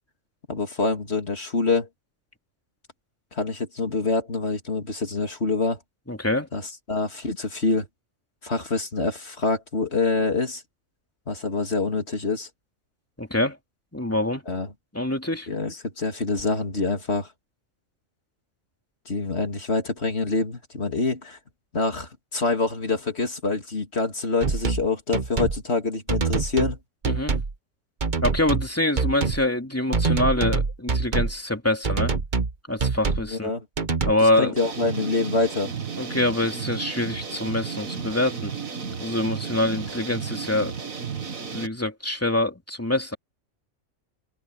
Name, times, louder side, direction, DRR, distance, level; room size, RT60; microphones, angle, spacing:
voice 1, 0.5-1.9 3.3-5.8 6.5-6.6 6.9-7.9 8.4-10.6 11.3-12.5 14.5-14.7 15.5-17.3 19.1-21.4 21.7-26.8 33.3-33.6 34.2-35.7, left 3 dB, 50° left, 3.2 m, -26 dB
voice 2, 6.1-6.5 13.2-13.6 13.9-14.4 14.9-15.5 27.1-27.4 28.2-32.1 32.7-33.5 34.0-34.6 36.0-38.5 39.0-40.7 41.5-43.2, left 1 dB, 10° left, 2.7 m, -25 dB
sound 1, 24.4-24.8 25.1-25.6 26.1-26.8 27.0-27.5 28.0-28.7 29.0-29.4 29.9-31.3 31.8-32.5 32.8-33.3 33.8-34.1, right 4 dB, 35° right, 1.3 m, -25 dB
sound 2, 34.6-41.7, right 6 dB, 80° right, 2.3 m, -33 dB
open air
omnidirectional pair, 1.4 m